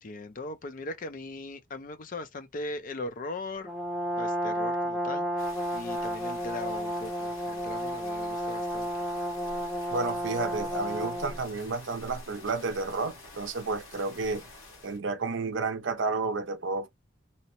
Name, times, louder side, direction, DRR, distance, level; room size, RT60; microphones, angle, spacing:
voice 1, 0.0-3.7 4.2-5.5 5.7-8.9, left 2 dB, 40° left, 0.4 m, -39 dB
Brass instrument, 3.6-11.4, equal, ahead, 0.6 m, -32 dB
sound 1, 5.4-15.0, left 2 dB, 80° left, 1.3 m, -48 dB
voice 2, 9.9-14.4 14.8-16.9, right 3 dB, 60° right, 0.5 m, -31 dB
2.7 x 2.1 x 2.8 m
head